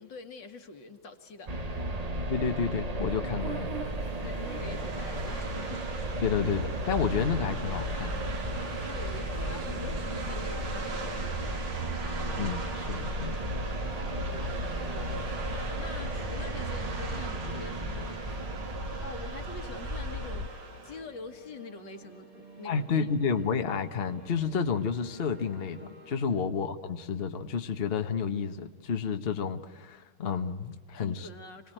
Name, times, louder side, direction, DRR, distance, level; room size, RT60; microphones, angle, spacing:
voice 1, 0.0-1.5 4.2-5.8 6.2-6.3 8.9-11.7 14.3-15.5 15.8-18.6 19.0-23.1 30.9-31.7, left 4 dB, 60° left, 6 dB, 2.2 m, -45 dB
sound 1, 1.5-20.5, right 1 dB, 25° right, 0.8 m, -34 dB
voice 2, 2.3-3.8 6.2-8.2 12.4-13.4 22.6-31.3, left 6 dB, 40° left, 6 dB, 1.0 m, -30 dB
sound 2, 3.1-21.0, right 4 dB, 75° right, 3.2 m, -41 dB
sound 3, 20.3-26.2, right 2 dB, 45° right, 2.6 m, -52 dB
27.5 x 19.5 x 9.1 m, 1.3 s
omnidirectional pair, 2.3 m